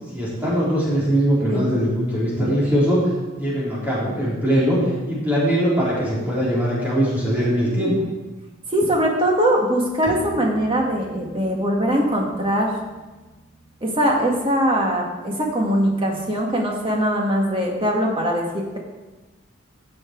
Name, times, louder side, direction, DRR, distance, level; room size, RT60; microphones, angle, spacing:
voice 1, 0.1-3.0 3.4-7.9, equal, 10° right, -8 dB, 4.0 m, -21 dB
voice 2, 8.7-12.7 13.8-18.8, equal, 25° right, 0 dB, 1.9 m, -21 dB
Bowed string instrument, 10.0-15.6, equal, 40° left, 2.6 m, -42 dB
16.5 x 6.4 x 4.6 m, 1.2 s
head